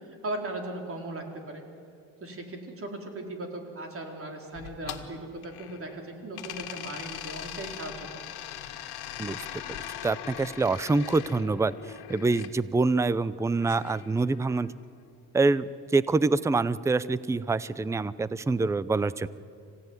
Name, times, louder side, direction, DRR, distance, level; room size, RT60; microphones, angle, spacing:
voice 1, 0.2-1.6 2.2-8.1, right 2 dB, 35° right, 2 dB, 4.1 m, -38 dB
creepy door opening, 4.6-6.0 6.4-12.5 13.6-14.7, left 11 dB, 85° left, 1.9 m, -41 dB
voice 2, 9.7-11.7 12.1-14.7 15.3-19.3, right 3 dB, 10° right, 18 dB, 0.5 m, -26 dB
25.5 x 16.5 x 9.7 m, 2.3 s
cardioid pair, 115°, 38 cm